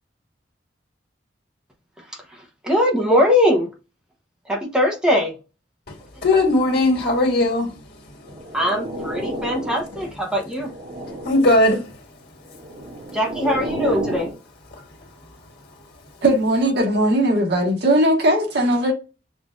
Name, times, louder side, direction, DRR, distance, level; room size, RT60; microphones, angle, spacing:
voice 1, 2.3-3.7 4.5-5.3 8.5-10.7 13.1-14.3, left 1 dB, 5° right, 0.8 m, -21 dB
voice 2, 6.2-7.7 11.3-11.8, left 2 dB, 60° left, 1.8 m, -17 dB
sound 1, 8.2-10.0 10.5-11.6 12.5-14.4, right 1 dB, 45° right, 2.4 m, -31 dB
voice 3, 16.2-18.9, right 1 dB, 65° right, 1.6 m, -18 dB
7.0 x 2.6 x 2.4 m
head